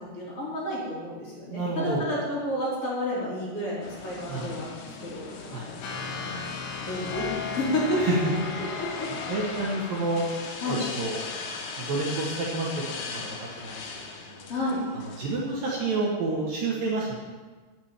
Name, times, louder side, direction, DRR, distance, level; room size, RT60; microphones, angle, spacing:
voice 1, 0.1-5.3 6.0-6.6 6.9-8.0 8.6-9.4 10.6-10.8 14.5-14.8, left 1 dB, 35° left, -8 dB, 4.2 m, -31 dB
voice 2, 1.5-2.1 4.3-4.6 5.5-5.7 8.0-8.4 9.3-10.2 10.6-11.2 11.8-12.7 13.1-14.0 14.3-14.5 15.2-17.2, right 3 dB, 60° right, -4 dB, 2.9 m, -29 dB
sound 1, 3.8-15.8, left 4 dB, 65° left, 1.9 m, -39 dB
sound 2, 5.8-11.3, left 5 dB, 80° left, 3.8 m, -36 dB
9.2 x 7.5 x 8.9 m, 1.4 s
omnidirectional pair, 5.2 m